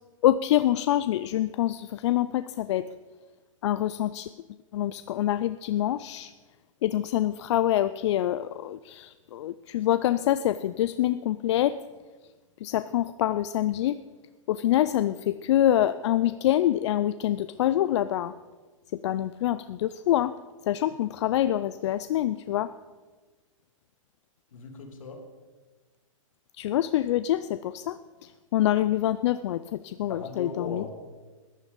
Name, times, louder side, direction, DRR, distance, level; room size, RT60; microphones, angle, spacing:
voice 1, 0.2-2.9 3.6-4.3 4.7-6.3 6.8-11.8 12.6-14.0 14.5-18.3 18.9-20.3 20.7-22.7 26.6-30.8, left 12 dB, 60° left, 13 dB, 0.4 m, -26 dB
voice 2, 24.5-25.2 30.1-30.9, left 4 dB, 80° left, 3 dB, 2.7 m, -38 dB
14.5 x 10.0 x 5.4 m, 1.3 s
hypercardioid pair, 130°, 17 cm